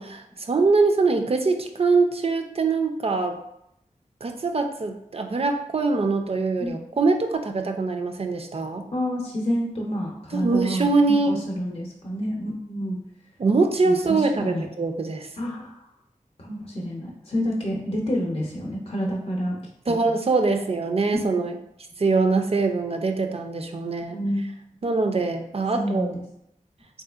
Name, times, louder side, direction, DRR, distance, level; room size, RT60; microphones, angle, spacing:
voice 1, 0.0-3.4 4.2-8.8 10.3-11.3 13.4-15.3 19.9-21.6 22.0-24.2 24.8-26.1, right 3 dB, 45° right, 5 dB, 0.4 m, -23 dB
voice 2, 8.9-13.0 13.8-14.6 15.4-15.8 16.4-19.6 19.9-20.0 24.1-24.4 25.7-26.2, equal, 45° left, -1 dB, 0.6 m, -28 dB
3.7 x 2.7 x 2.4 m, 0.78 s
wide cardioid pair, 55°, 14 cm